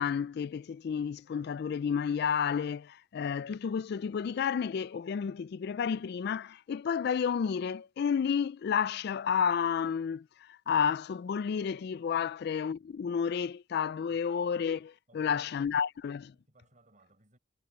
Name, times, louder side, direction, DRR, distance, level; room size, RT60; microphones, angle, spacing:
voice 1, 0.0-16.3, left 7 dB, 55° left, 0.3 m, -31 dB
voice 2, 15.1-15.8 16.3-17.4, right 1 dB, 40° right, 7.7 m, -64 dB
head